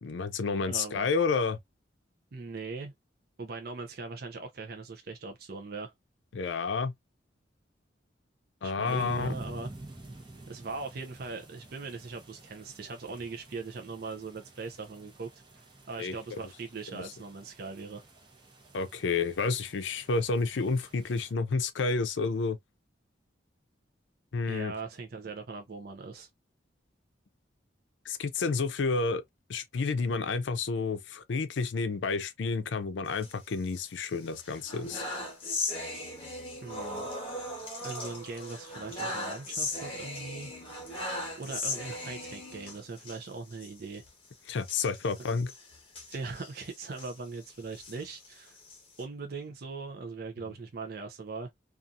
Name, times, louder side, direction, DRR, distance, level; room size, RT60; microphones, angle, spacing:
voice 1, 0.0-1.6 6.3-6.9 8.6-9.3 16.0-16.1 16.9-17.0 18.7-22.6 24.3-24.7 28.1-29.2 29.5-35.0 44.5-45.5, left 4 dB, 80° left, 0.5 m, -30 dB
voice 2, 0.6-1.1 2.3-2.9 3.4-5.9 8.6-9.7 10.5-15.3 15.9-18.0 24.4-26.3 36.6-37.1 37.8-40.5 41.4-44.0 46.1-48.6 49.0-51.5, right 4 dB, 55° right, 0.5 m, -40 dB
sound 1, 8.8-21.3, right 2 dB, 25° right, 0.8 m, -49 dB
sound 2, 33.1-34.0 34.4-43.2 43.5-43.7 43.9-44.1 44.6-47.1 47.6-49.0, left 2 dB, 30° left, 1.1 m, -38 dB
2.7 x 2.4 x 2.4 m
head